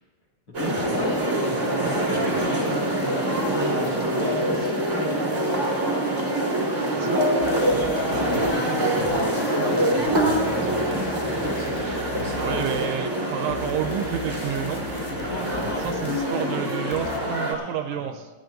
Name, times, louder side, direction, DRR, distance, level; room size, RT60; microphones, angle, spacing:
voice 1, 0.5-1.2 1.5-4.7 8.0-12.7 13.2-13.3 15.3-18.2, left 1 dB, 45° left, -3 dB, 1.8 m, -35 dB
sound 1, 0.5-17.5, right 1 dB, 65° right, 0.7 m, -25 dB
voice 2, 7.0-7.3 12.4-14.8 15.8-18.3, right 10 dB, 85° right, 6 dB, 2.9 m, -30 dB
sound 2, 7.4-17.2, left 7 dB, 85° left, 3.2 m, -38 dB
27.5 x 10.5 x 2.6 m, 1.2 s
omnidirectional pair, 5.7 m